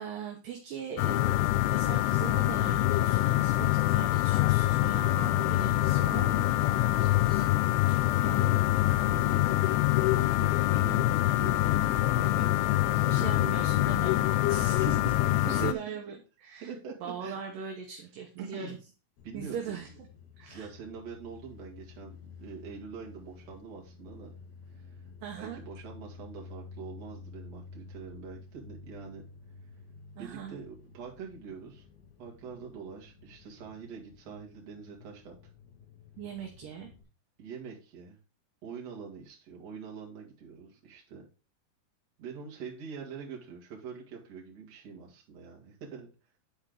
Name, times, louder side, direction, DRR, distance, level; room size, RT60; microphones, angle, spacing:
voice 1, 0.0-7.5 13.1-14.2 14.5-15.0 15.4-16.7 17.0-18.8 19.3-19.9 20.4-20.7 25.2-25.6 30.2-30.6 36.2-36.9, right 8 dB, 70° right, 2 dB, 2.2 m, -40 dB
Room Tone Small Electrical Buzz, 1.0-15.7, left 16 dB, 85° left, 2.6 m, -25 dB
voice 2, 8.1-8.8 9.1-11.5 12.1-13.7 14.8-15.8 16.6-17.4 18.4-18.8 19.2-19.8 20.5-24.3 24.7-25.0 25.3-29.2 30.2-31.8 32.2-35.4 37.4-38.2 38.6-41.3 42.2-46.1, right 6 dB, 50° right, -1 dB, 2.4 m, -44 dB
sound 1, 19.2-37.0, left 4 dB, 70° left, 3.7 m, -51 dB
10.5 x 4.4 x 3.8 m, 0.33 s
omnidirectional pair, 4.9 m